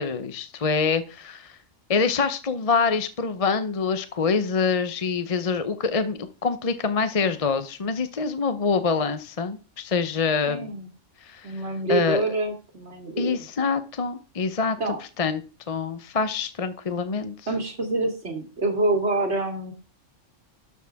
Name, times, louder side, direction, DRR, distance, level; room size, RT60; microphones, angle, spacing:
voice 1, 0.0-1.6 1.9-10.7 11.2-11.6 11.9-12.2 13.2-14.8 15.2-15.4 15.7-17.3, left 5 dB, 35° left, 11 dB, 0.7 m, -25 dB
voice 2, 10.5-10.9 11.4-13.4 14.8-15.0 17.5-19.7, right 2 dB, 60° right, 3 dB, 2.7 m, -26 dB
12.5 x 7.3 x 3.5 m, 0.34 s
omnidirectional pair, 1.3 m